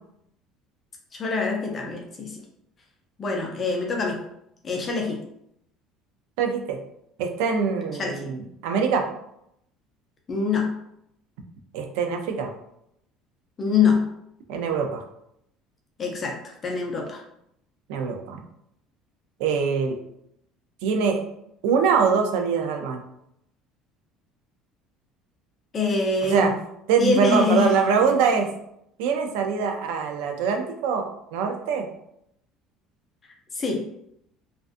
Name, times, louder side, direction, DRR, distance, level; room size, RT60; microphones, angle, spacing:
voice 1, 1.1-2.4 3.2-4.2 4.6-5.2 7.9-8.3 10.3-10.8 13.6-14.1 16.0-17.2 25.7-26.5 27.0-27.7 28.0-28.1 33.5-33.9, left 4 dB, 25° left, 1 dB, 0.3 m, -25 dB
voice 2, 6.4-6.8 7.2-8.4 8.6-9.0 11.7-12.5 14.5-15.0 17.9-18.4 19.4-20.0 20.8-21.2 21.6-23.0 26.3-26.5 26.9-28.5 29.0-31.1 31.3-31.9, right 6 dB, 90° right, 5 dB, 0.4 m, -23 dB
2.4 x 2.2 x 2.5 m, 0.76 s
cardioid pair, 165°, 0 cm